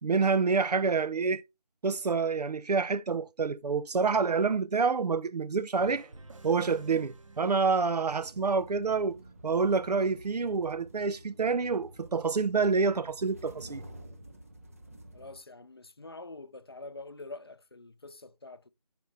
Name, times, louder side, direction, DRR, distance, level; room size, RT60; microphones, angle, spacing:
voice 1, 0.0-1.4 1.8-6.1 6.4-13.8, right 4 dB, 85° right, 0.6 m, -27 dB
sound 1, 5.8-8.6, right 3 dB, 55° right, 0.9 m, -52 dB
sound 2, 8.1-15.4, right 1 dB, 20° right, 0.5 m, -50 dB
voice 2, 15.1-18.7, left 2 dB, 40° left, 0.4 m, -46 dB
9.2 x 5.1 x 2.6 m
figure-of-eight pair, 165°, 20 cm